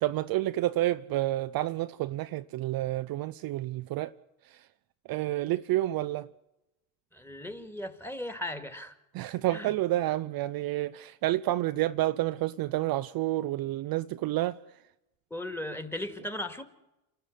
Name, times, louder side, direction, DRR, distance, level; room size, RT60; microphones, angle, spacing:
voice 1, 0.0-4.1 5.1-6.3 9.1-14.6, right 15 dB, 50° right, 0.7 m, -29 dB
voice 2, 7.1-9.0 9.5-9.7 15.3-16.6, left 1 dB, 5° left, 2.5 m, -37 dB
28.0 x 12.5 x 9.5 m
hypercardioid pair, 80°, 47 cm